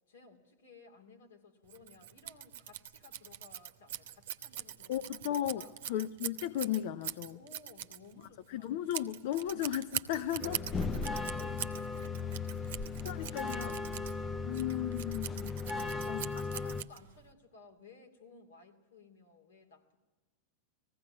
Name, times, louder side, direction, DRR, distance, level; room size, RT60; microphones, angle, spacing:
voice 1, 0.1-5.8 7.3-9.1 11.3-12.9 13.2-15.0 15.7-20.0, left 4 dB, 75° left, 3 dB, 2.6 m, -58 dB
Scissors, 1.7-17.3, right 11 dB, 70° right, 0.8 m, -43 dB
voice 2, 4.9-7.4 8.5-10.6 13.0-13.8 14.4-15.6 16.1-16.2, left 12 dB, 60° left, 12 dB, 0.6 m, -35 dB
sound 1, 10.4-16.8, left 4 dB, 25° left, 0.7 m, -37 dB
19.5 x 15.5 x 9.6 m, 1.2 s
hypercardioid pair, 95°, 0 cm